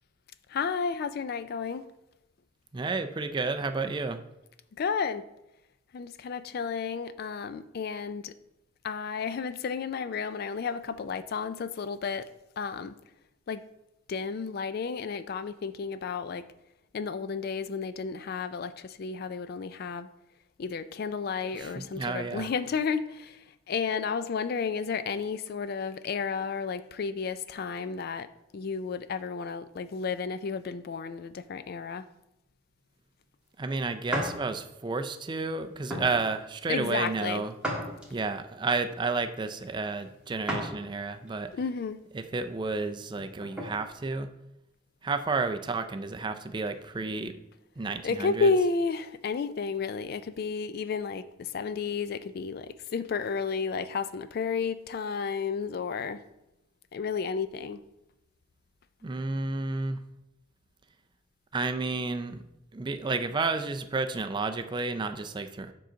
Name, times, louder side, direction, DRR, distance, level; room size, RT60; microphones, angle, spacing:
voice 1, 0.5-1.9 4.8-5.2 5.9-8.3 8.8-12.3 12.6-12.9 13.5-13.6 14.1-16.4 16.9-20.1 20.6-32.1 36.7-37.4 41.5-42.0 48.0-56.2 56.9-57.8, left 5 dB, 50° left, 13 dB, 0.3 m, -32 dB
voice 2, 2.7-4.2 21.6-22.5 33.6-37.5 38.1-41.5 42.1-44.3 45.0-47.4 47.8-48.5 59.0-60.0 61.5-62.4 62.7-65.7, right 3 dB, 25° right, 8 dB, 0.4 m, -31 dB
sound 1, 34.1-34.4 35.0-35.2 35.9-36.2 37.6-38.4 40.5-40.8 41.3-41.4 43.0-43.7, equal, 5° right, 1.4 m, -33 dB
7.7 x 3.9 x 5.6 m, 0.88 s
head